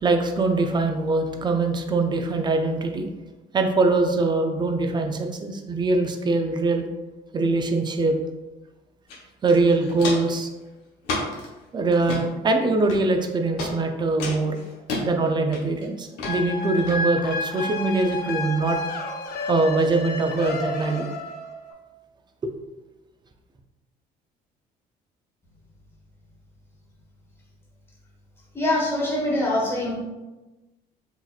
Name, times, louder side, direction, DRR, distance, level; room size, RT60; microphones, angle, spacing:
voice 1, 0.0-3.1 3.5-6.8 7.3-8.2 9.4-10.5 11.7-14.6 15.0-18.8 19.5-21.1 22.4-22.5, right 3 dB, 25° right, 5 dB, 0.4 m, -23 dB
Walk footsteps, 9.1-9.2 9.5-10.4 11.0-11.5 11.9-12.2 12.9-13.2 13.6-13.7 14.2-15.0 15.5-15.8 16.2-16.3 16.9-17.0, left 2 dB, 90° left, 0.9 m, -30 dB
sound 1, 16.2-21.7, left 2 dB, 75° left, 0.5 m, -31 dB
voice 2, 28.5-30.0, left 1 dB, 15° left, -5 dB, 1.2 m, -24 dB
4.0 x 2.8 x 2.3 m, 1.1 s
cardioid pair, 110°, 17 cm